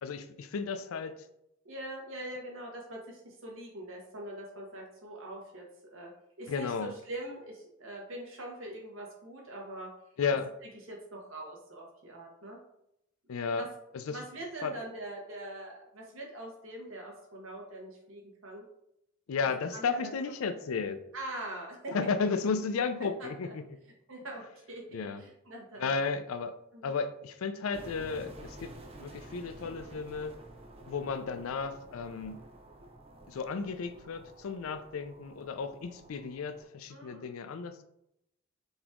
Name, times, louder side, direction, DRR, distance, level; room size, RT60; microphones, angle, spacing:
voice 1, 0.0-1.2 6.5-6.9 10.2-10.5 13.3-13.6 14.1-14.2 14.6-14.7 19.3-21.0 21.9-23.6 24.9-25.2 25.8-26.6 26.8-28.7 29.0-30.4 30.9-32.4 33.3-37.8, left 5 dB, 90° left, 11 dB, 0.4 m, -33 dB
voice 2, 1.6-6.1 6.4-9.9 10.9-12.6 13.5-13.7 14.1-18.6 19.7-20.1 21.1-22.3 23.0-23.5 24.1-25.9 26.7-27.0 36.9-37.3, right 1 dB, 75° right, -1 dB, 1.2 m, -43 dB
sound 1, 27.7-36.6, right 1 dB, 30° right, 0.6 m, -51 dB
4.0 x 2.9 x 3.6 m, 0.79 s
head